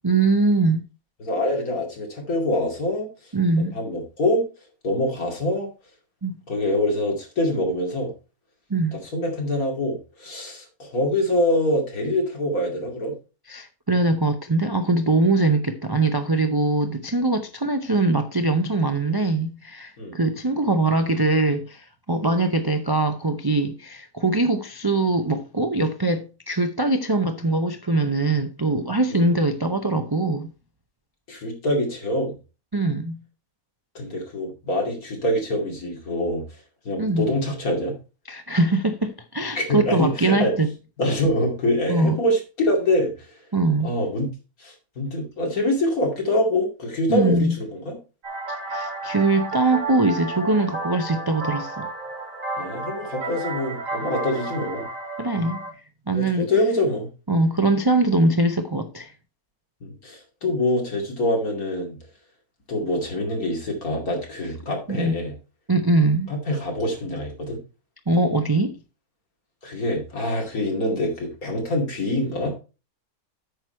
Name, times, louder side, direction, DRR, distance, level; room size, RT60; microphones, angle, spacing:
voice 1, 0.0-0.8 3.3-3.7 6.2-6.3 8.7-9.0 13.5-30.5 32.7-33.2 37.0-37.2 38.3-40.7 41.9-42.2 43.5-43.9 47.1-47.6 48.7-51.9 55.2-55.6 56.1-56.5 57.3-59.1 64.9-65.2 65.7-66.3 68.1-68.7, right 2 dB, 40° right, 0.3 m, -22 dB
voice 2, 1.2-3.1 3.6-4.5 4.8-5.7 6.5-8.1 9.1-13.1 20.0-20.2 29.1-29.3 31.3-32.4 33.9-36.4 36.8-38.0 39.5-40.5 41.0-43.3 43.8-44.3 44.6-48.0 52.6-54.9 56.2-57.1 59.8-62.0 62.7-65.3 66.3-67.6 69.6-72.6, left 1 dB, 75° left, 3.0 m, -25 dB
sound 1, 48.2-55.7, right 2 dB, 60° right, 2.7 m, -32 dB
8.7 x 6.1 x 4.3 m
omnidirectional pair, 1.5 m